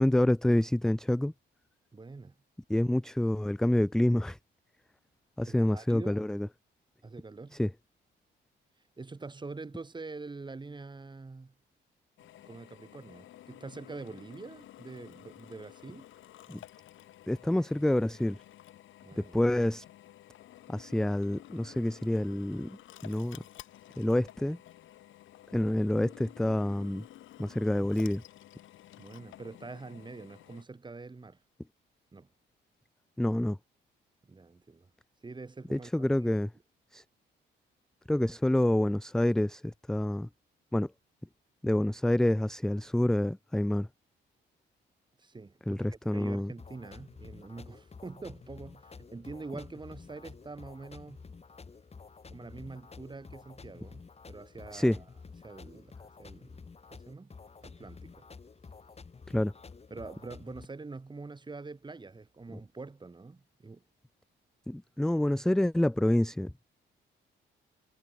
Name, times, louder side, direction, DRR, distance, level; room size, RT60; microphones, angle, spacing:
voice 1, 0.0-1.3 2.7-4.4 5.4-6.5 7.5-7.7 16.5-16.6 17.3-18.4 19.2-19.8 20.7-23.4 24.0-24.6 25.5-27.1 27.4-28.2 33.2-33.6 35.7-36.5 36.9-37.0 38.1-40.3 40.7-40.9 41.6-43.9 45.7-46.5 54.7-55.0 59.3-59.5 64.7-66.5, left 1 dB, 5° left, 0.4 m, -27 dB
voice 2, 1.9-2.4 5.5-6.2 7.0-7.6 9.0-11.5 12.5-16.1 19.0-19.4 29.0-31.4 32.1-32.3 34.2-34.9 35.2-35.9 36.2-36.3 45.2-51.3 52.3-54.0 54.3-55.0 55.4-56.6 56.9-57.3 57.6-58.3 59.9-63.8, right 3 dB, 20° right, 2.8 m, -45 dB
Drill, 12.2-30.6, left 13 dB, 80° left, 1.5 m, -53 dB
sound 1, 46.6-60.6, left 4 dB, 30° left, 4.4 m, -50 dB
cardioid pair, 90°, 20 cm